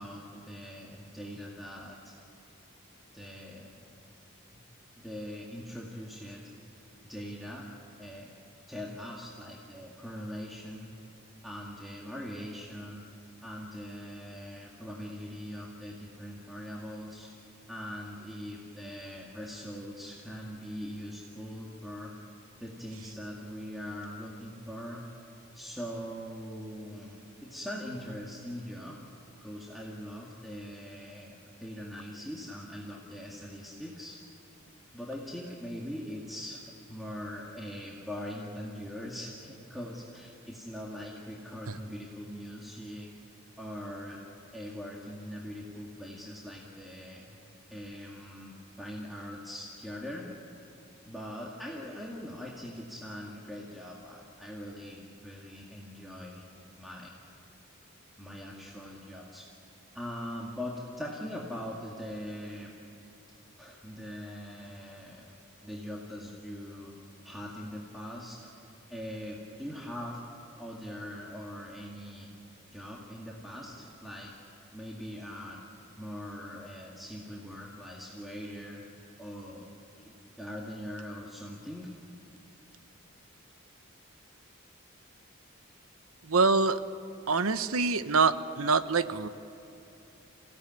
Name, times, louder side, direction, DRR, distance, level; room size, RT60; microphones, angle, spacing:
voice 1, 0.0-2.1 3.1-4.0 5.0-6.4 7.0-7.7 8.0-8.3 8.7-10.9 11.4-13.1 13.4-17.3 17.7-22.1 22.6-25.1 25.5-29.0 29.4-34.2 34.9-43.1 43.6-44.2 44.5-47.4 47.7-50.3 51.1-56.4 56.8-57.1 58.2-59.5 59.9-62.7 63.6-65.3 65.6-66.9 67.2-68.5 68.9-70.2 70.5-72.3 72.7-74.3 74.7-75.6 76.0-78.8 79.2-79.7 80.0-81.9, equal, ahead, -4 dB, 2.1 m, -41 dB
voice 2, 86.3-86.8 87.3-89.3, right 4 dB, 90° right, 12 dB, 1.0 m, -25 dB
28.5 x 17.0 x 9.4 m, 2.9 s
head